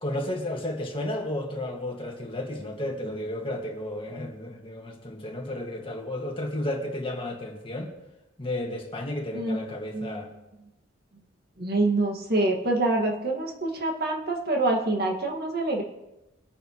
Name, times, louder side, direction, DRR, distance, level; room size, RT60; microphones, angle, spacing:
voice 1, 0.0-7.9 8.4-10.3, left 1 dB, 30° left, 0 dB, 2.0 m, -32 dB
voice 2, 11.6-15.8, right 2 dB, 55° right, 1 dB, 2.0 m, -26 dB
23.0 x 9.8 x 3.2 m, 0.97 s
head